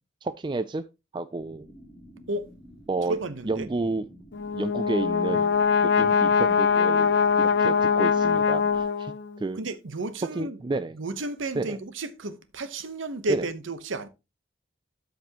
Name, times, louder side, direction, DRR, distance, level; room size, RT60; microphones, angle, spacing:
voice 1, 0.2-0.8 1.1-1.7 2.9-3.2 3.4-4.0 4.6-9.1 9.4-9.6 10.4-11.0 11.6-11.8 13.3-13.5, right 3 dB, 25° right, 0.3 m, -31 dB
sound 1, 1.4-8.8, equal, 10° left, 4.3 m, -50 dB
voice 2, 3.1-3.7 9.5-10.6 11.0-14.1, right 2 dB, 90° right, 0.9 m, -32 dB
Brass instrument, 4.3-9.4, left 6 dB, 70° left, 0.5 m, -22 dB
12.5 x 5.2 x 2.9 m
head